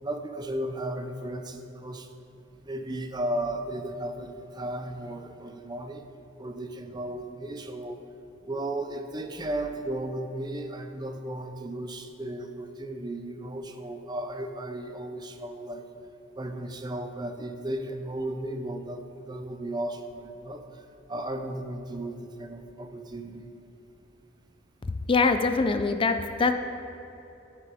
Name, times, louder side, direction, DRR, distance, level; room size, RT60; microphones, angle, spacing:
voice 1, 0.0-2.1 2.6-6.0 6.4-8.0 8.5-15.9 16.4-20.6 21.1-23.5, right 1 dB, 25° right, 7 dB, 0.5 m, -35 dB
voice 2, 25.1-26.5, left 4 dB, 30° left, 8 dB, 0.4 m, -23 dB
9.9 x 7.6 x 4.9 m, 3.0 s
head